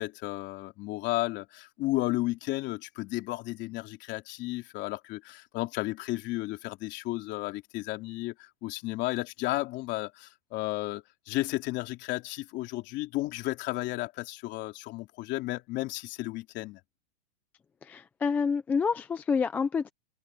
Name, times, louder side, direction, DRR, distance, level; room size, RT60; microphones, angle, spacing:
voice 1, 0.0-16.8, left 19 dB, 35° left, 3.4 m, -33 dB
voice 2, 17.8-19.9, left 5 dB, 5° left, 0.3 m, -28 dB
supercardioid pair, 155°, 33 cm